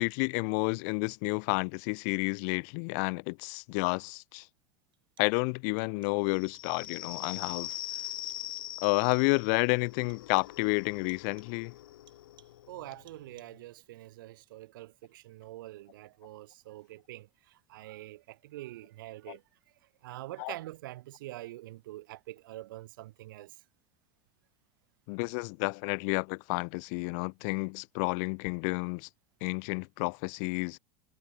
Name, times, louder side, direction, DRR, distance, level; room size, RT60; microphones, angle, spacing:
voice 1, 0.0-4.4 5.2-7.7 8.8-11.7 19.3-19.4 20.4-20.5 25.1-29.1 29.4-30.8, left 39 dB, 60° left, 0.4 m, -30 dB
sound 1, 3.9-4.0 4.9-5.5 5.8-6.3 6.5-7.1 7.4-8.0 8.3-9.6 10.1-10.7 11.1-11.6 12.1-12.7 13.1-13.7, right 12 dB, 45° right, 7.4 m, -64 dB
sound 2, 6.3-13.6, left 14 dB, 80° left, 1.7 m, -43 dB
voice 2, 12.7-19.4 20.0-23.5, right 16 dB, 75° right, 0.4 m, -45 dB
hypercardioid pair, 85°, 11 cm